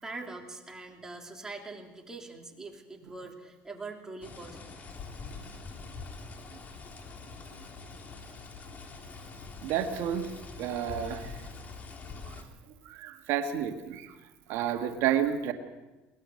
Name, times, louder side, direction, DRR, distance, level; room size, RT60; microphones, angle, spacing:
voice 1, 0.0-4.7, right 3 dB, 15° right, 1 dB, 3.2 m, -43 dB
sound 1, 4.2-12.4, left 4 dB, 35° left, 3.2 m, -44 dB
voice 2, 9.6-10.3 10.6-11.3 12.8-14.1 14.5-15.5, right 9 dB, 70° right, 6 dB, 1.6 m, -30 dB
22.0 x 18.5 x 6.5 m, 1.2 s
supercardioid pair, 115°, 5 cm